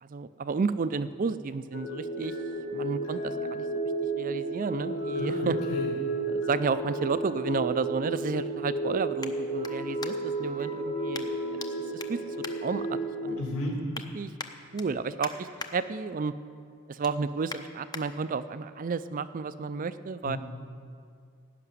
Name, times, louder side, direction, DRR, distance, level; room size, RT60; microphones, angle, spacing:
voice 1, 0.0-2.3 2.7-3.7 4.2-5.6 6.3-11.6 11.9-12.2 12.6-13.6 14.1-14.3 14.7-16.3 16.9-20.4, right 4 dB, 35° right, 13 dB, 0.4 m, -32 dB
sound 1, 1.7-13.3, right 2 dB, 60° left, 2.9 m, -32 dB
voice 2, 5.2-5.9 13.4-13.8 20.2-20.4, left 1 dB, 85° left, -2 dB, 3.7 m, -33 dB
sound 2, 9.2-10.5 11.1-11.7 12.0-13.3 13.6-14.1 14.4-15.7 16.1-16.4 16.7-18.0 18.6-18.7, left 3 dB, 20° left, 0.6 m, -43 dB
17.0 x 5.9 x 9.4 m, 2.3 s
head